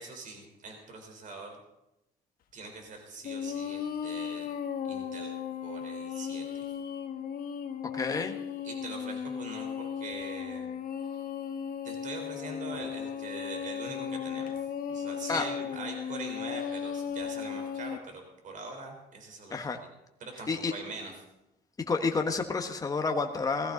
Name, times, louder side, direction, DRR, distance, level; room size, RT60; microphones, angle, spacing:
voice 1, 0.0-1.6 2.5-4.5 4.8-5.3 5.6-6.7 8.6-10.7 11.8-19.9 20.2-21.1, right 3 dB, 50° right, 3 dB, 4.0 m, -43 dB
sound 1, 3.2-18.0, left 7 dB, 60° left, 1.6 m, -36 dB
voice 2, 7.9-8.3 15.3-15.4 19.5-19.8 20.5-20.7 21.9-23.7, left 4 dB, 20° left, 4 dB, 1.3 m, -29 dB
18.5 x 14.5 x 4.0 m, 0.90 s
cardioid pair, 110°, 17 cm